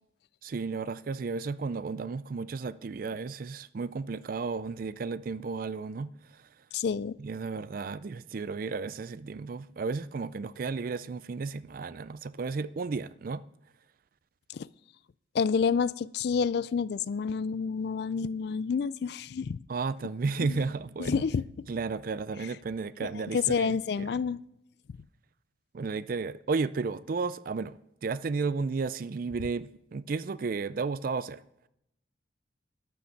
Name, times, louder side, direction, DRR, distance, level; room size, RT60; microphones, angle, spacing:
voice 1, 0.4-6.1 7.2-13.4 19.7-21.2 21.7-24.2 25.7-31.4, right 4 dB, 45° right, 0.4 m, -33 dB
voice 2, 6.7-7.2 14.5-14.7 15.3-19.6 20.4-20.6 21.0-21.7 23.0-24.4, left 6 dB, 55° left, 0.3 m, -29 dB
12.5 x 6.4 x 5.8 m
head